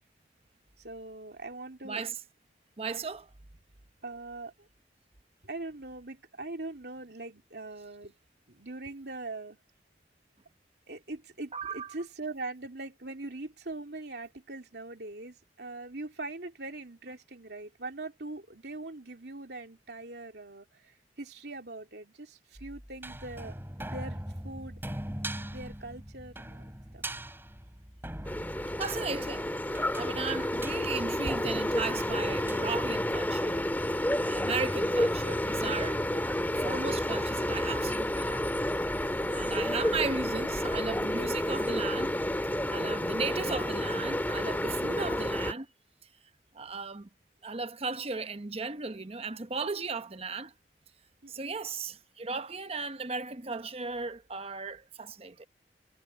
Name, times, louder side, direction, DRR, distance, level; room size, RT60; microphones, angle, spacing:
voice 1, 0.8-2.0 4.0-4.7 5.4-8.1 8.5-9.6 10.9-24.8 25.5-26.7 26.9-27.0 51.2-51.6, right 2 dB, 65° right, 3.3 m, -42 dB
voice 2, 1.8-2.2 2.8-3.3 11.5-11.9 28.8-29.5 30.0-33.6 34.2-36.3 36.6-38.4 39.3-42.2 42.7-45.7 46.5-47.1 47.4-50.5 51.3-55.5, right 4 dB, 35° right, 0.9 m, -36 dB
sound 1, 22.6-32.7, right 1 dB, 15° right, 4.0 m, -42 dB
sound 2, 28.3-45.5, left 1 dB, 10° left, 2.0 m, -30 dB
head